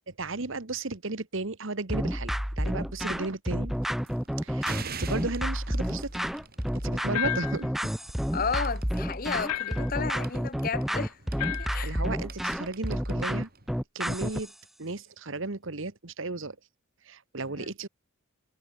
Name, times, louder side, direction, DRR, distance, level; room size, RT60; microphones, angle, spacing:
voice 1, 0.1-3.7 4.4-6.1 6.7-7.7 11.8-13.5 13.9-14.5 14.8-16.6 17.0-17.9, right 3 dB, 60° right, 1.3 m, -34 dB
sound 1, 1.9-14.5, equal, ahead, 0.5 m, -30 dB
sound 2, 3.8-13.8, right 5 dB, 45° right, 4.8 m, -47 dB
sound 3, 7.1-7.7 9.5-10.0 11.4-11.8, left 13 dB, 85° left, 0.3 m, -32 dB
voice 2, 8.3-11.2 11.6-12.0 17.6-17.7, left 5 dB, 40° left, 0.7 m, -32 dB
head